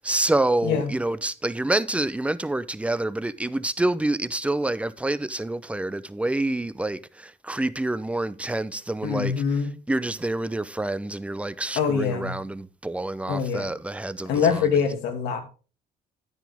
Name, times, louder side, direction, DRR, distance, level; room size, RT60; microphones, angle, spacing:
voice 1, 0.0-14.7, right 2 dB, 5° right, 0.6 m, -27 dB
voice 2, 9.0-9.7 11.8-12.3 13.3-13.7 14.3-15.4, left 6 dB, 80° left, 2.5 m, -24 dB
9.8 x 9.4 x 3.5 m
cardioid pair, 110°, 17 cm